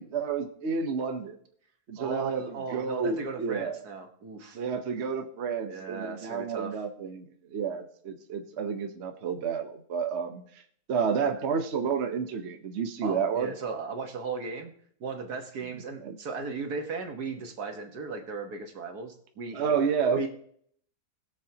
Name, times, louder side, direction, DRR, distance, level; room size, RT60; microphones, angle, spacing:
voice 1, 0.0-1.4 1.9-2.4 2.7-3.8 4.5-10.6 10.9-13.5 16.0-16.2 19.5-20.3, right 6 dB, 50° right, 6 dB, 1.1 m, -30 dB
voice 2, 2.0-4.6 5.6-6.8 13.0-14.7 15.0-19.8 20.1-20.3, right 4 dB, 75° right, 4 dB, 2.0 m, -36 dB
20.5 x 7.1 x 2.9 m, 0.62 s
omnidirectional pair, 1.7 m